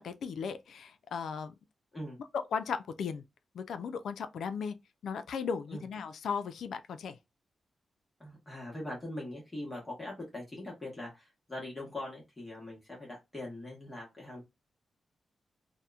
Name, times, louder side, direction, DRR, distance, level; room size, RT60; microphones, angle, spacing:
voice 1, 0.0-1.5 2.3-3.2 3.5-4.8 5.0-7.2, left 6 dB, 80° left, 0.3 m, -36 dB
voice 2, 8.2-14.4, left 1 dB, 15° left, 0.9 m, -42 dB
2.8 x 2.1 x 2.3 m
wide cardioid pair, 155°, 0 cm